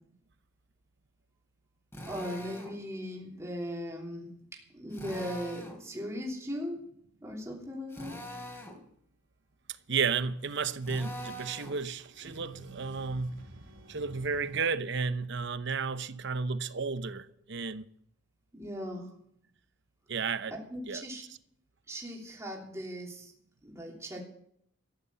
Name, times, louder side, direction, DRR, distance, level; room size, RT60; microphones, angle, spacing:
Drill, 1.9-2.8 4.9-5.8 7.9-8.8 10.8-11.8, equal, 15° left, 3.4 m, -43 dB
voice 1, 2.0-6.8 7.2-8.1 18.5-19.1 20.5-21.3 21.9-23.3 23.6-24.2, equal, 15° right, 3.2 m, -38 dB
sound 1, 9.8-14.6, equal, 80° right, 3.2 m, -54 dB
voice 2, 9.9-13.4 13.9-17.8 20.1-20.6 20.9-21.0, right 5 dB, 60° right, 0.8 m, -32 dB
Guitar, 12.2-13.9, right 5 dB, 65° left, 4.5 m, -52 dB
14.5 x 11.0 x 6.9 m
head